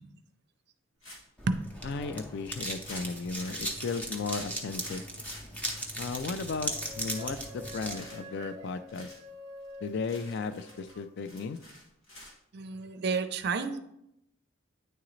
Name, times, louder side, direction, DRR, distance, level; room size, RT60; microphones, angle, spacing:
sound 1, 1.0-1.4 1.9-2.0 2.3-2.4 2.8-6.3 6.7-7.5 7.8-8.4 8.9-9.2 9.6-9.7 10.0-12.3, left 1 dB, 75° left, 2.1 m, -49 dB
sound 2, 1.4-8.0, right 1 dB, 10° left, 0.7 m, -38 dB
voice 1, 1.8-5.0 6.0-9.1 9.8-11.6, left 4 dB, 55° left, 11 dB, 0.4 m, -35 dB
sound 3, 6.6-11.1, left 1 dB, 30° right, 1.0 m, -47 dB
voice 2, 12.5-13.8, right 4 dB, 55° right, 10 dB, 0.5 m, -30 dB
9.3 x 3.8 x 3.1 m, 0.80 s
head